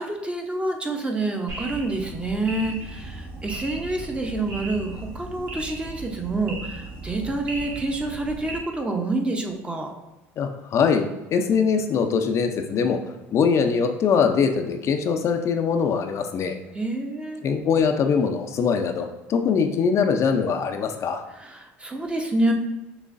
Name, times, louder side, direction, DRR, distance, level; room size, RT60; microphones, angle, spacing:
voice 1, 0.0-9.9 16.7-17.4 21.3-22.5, right 2 dB, 15° right, 3 dB, 0.7 m, -27 dB
sound 1, 1.5-8.6, right 2 dB, 65° right, 1.5 m, -36 dB
voice 2, 10.4-13.0 13.3-16.6 17.4-21.2, left 6 dB, 45° left, 5 dB, 0.5 m, -22 dB
6.1 x 3.1 x 2.5 m, 1.0 s
supercardioid pair, 90°, 7 cm